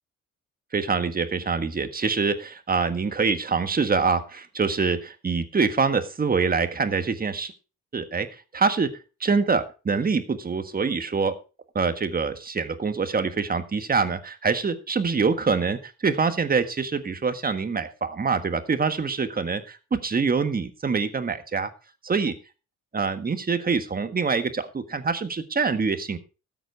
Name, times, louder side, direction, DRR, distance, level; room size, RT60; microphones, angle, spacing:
voice 1, 0.7-7.5 7.9-8.3 8.5-11.4 11.7-21.7 22.0-22.3 22.9-26.2, right 5 dB, 30° right, 9 dB, 1.6 m, -25 dB
13.0 x 7.9 x 4.5 m, 0.33 s
cardioid pair, 90°, 30 cm